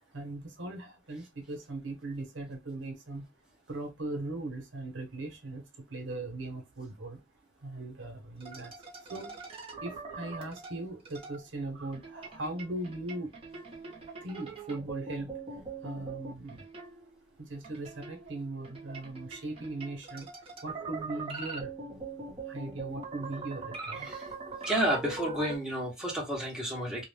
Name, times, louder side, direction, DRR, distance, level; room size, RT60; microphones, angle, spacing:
voice 1, 0.1-3.3 3.7-7.2 7.6-8.7 9.1-9.4 9.8-13.3 14.2-15.3 15.8-16.7 17.4-20.3 20.6-21.7 22.5-24.1, right 2 dB, 80° right, 0.9 m, -39 dB
sound 1, 8.4-11.4 11.9-17.2 17.6-25.6, right 3 dB, 30° right, 0.8 m, -42 dB
voice 2, 24.6-27.0, right 1 dB, 5° right, 0.9 m, -31 dB
2.4 x 2.1 x 3.2 m
head